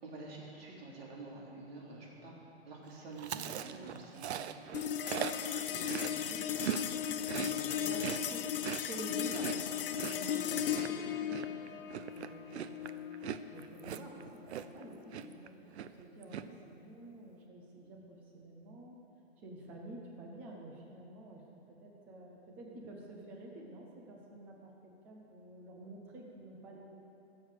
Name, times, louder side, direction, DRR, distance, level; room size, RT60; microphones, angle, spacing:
voice 1, 0.0-2.3 2.7-4.6 7.3-7.8 10.5-11.2, right 3 dB, 65° right, -3 dB, 3.6 m, -48 dB
Chewing mastication, 3.2-6.8 7.1-14.8 15.1-15.5 15.7-16.4, right 9 dB, 80° right, 0.7 m, -40 dB
sound 1, 4.7-15.4, left 10 dB, 55° left, 0.7 m, -37 dB
voice 2, 5.7-7.0 7.7-8.5 8.8-13.0 13.5-19.0 19.4-26.9, right 2 dB, 5° right, 0 dB, 0.3 m, -49 dB
16.0 x 7.4 x 6.4 m, 2.8 s
hypercardioid pair, 165°, 33 cm